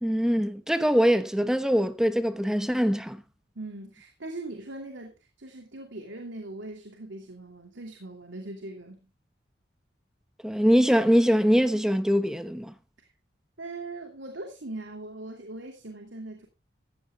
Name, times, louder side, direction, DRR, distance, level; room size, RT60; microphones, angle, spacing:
voice 1, 0.0-3.2 10.4-12.7, equal, 5° right, 1.0 m, -23 dB
voice 2, 3.5-9.1 13.6-16.5, right 2 dB, 90° right, 2.7 m, -40 dB
15.5 x 15.0 x 2.3 m
head